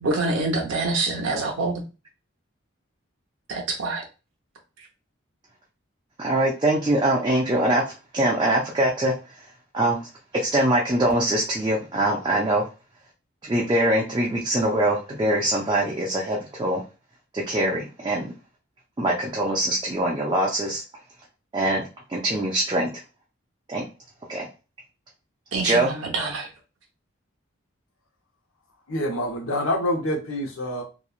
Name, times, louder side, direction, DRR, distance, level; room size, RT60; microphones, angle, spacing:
voice 1, 0.0-1.8 3.5-4.0 25.5-26.5, right 2 dB, 75° right, 1 dB, 0.6 m, -26 dB
voice 2, 6.2-7.8 8.1-9.1 9.7-10.0 10.3-12.6 13.4-16.8 17.3-18.3 19.0-20.8 21.5-21.8 22.1-22.9 23.7-23.8 24.3-24.5 25.6-25.9, right 1 dB, 20° right, -3 dB, 0.4 m, -23 dB
voice 3, 28.9-30.8, left 1 dB, 85° left, 1 dB, 0.9 m, -26 dB
2.9 x 2.3 x 2.4 m, 0.31 s
head